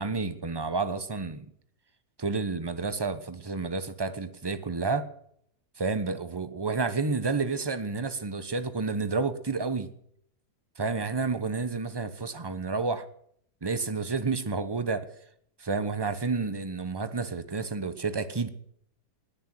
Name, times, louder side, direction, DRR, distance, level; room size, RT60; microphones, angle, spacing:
voice 1, 0.0-1.5 2.2-5.1 5.8-9.9 10.8-13.0 13.6-15.1 15.6-18.5, right 4 dB, 20° right, 0.8 m, -30 dB
19.5 x 6.7 x 9.3 m
omnidirectional pair, 1.7 m